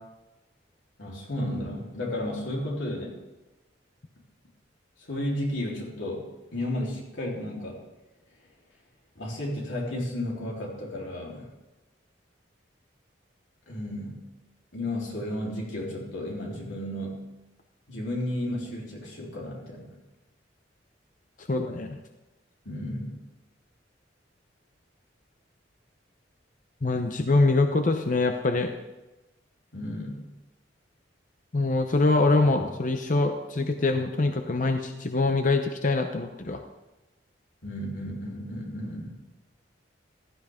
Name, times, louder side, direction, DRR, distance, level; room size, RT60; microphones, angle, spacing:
voice 1, 1.0-3.2 5.0-6.3 6.5-7.8 9.2-11.5 13.7-14.2 14.7-17.2 17.9-19.9 22.7-23.2 29.7-30.3 37.6-39.2, left 1 dB, 85° left, -2 dB, 3.6 m, -33 dB
voice 2, 21.5-22.0 26.8-28.7 31.5-36.6, left 3 dB, 45° left, 6 dB, 0.7 m, -24 dB
15.5 x 13.0 x 3.6 m, 1.1 s
head